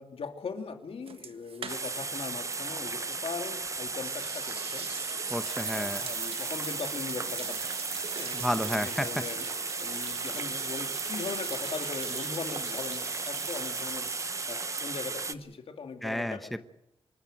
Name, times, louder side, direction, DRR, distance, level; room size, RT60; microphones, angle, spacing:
voice 1, 0.0-4.9 5.7-7.7 8.1-9.4 9.8-14.1 14.5-16.6, left 5 dB, 90° left, 5 dB, 2.6 m, -40 dB
sound 1, 1.1-2.2 2.4-2.5 3.9-15.2, right 6 dB, 80° right, 1.5 m, -41 dB
sound 2, 1.7-15.3, right 3 dB, 35° right, 0.8 m, -35 dB
voice 2, 5.3-6.1 8.3-9.1 16.0-16.6, equal, ahead, 10 dB, 0.9 m, -31 dB
26.0 x 13.0 x 9.0 m, 0.85 s
wide cardioid pair, 135°, 9 cm